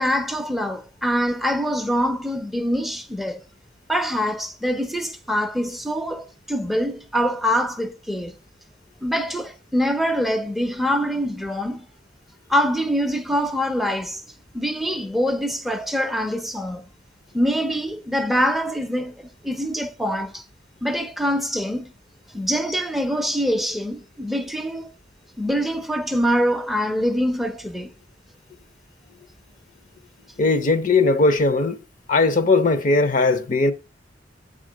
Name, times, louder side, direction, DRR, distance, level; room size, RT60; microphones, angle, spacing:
voice 1, 0.0-3.4 3.9-8.4 9.0-11.9 12.5-14.2 14.5-16.9 17.3-20.4 20.8-21.9 22.3-24.9 25.4-27.9, equal, ahead, 0.5 m, -24 dB
voice 2, 30.4-31.8 32.1-33.7, left 3 dB, 45° left, 0.6 m, -18 dB
8.2 x 3.7 x 6.1 m
head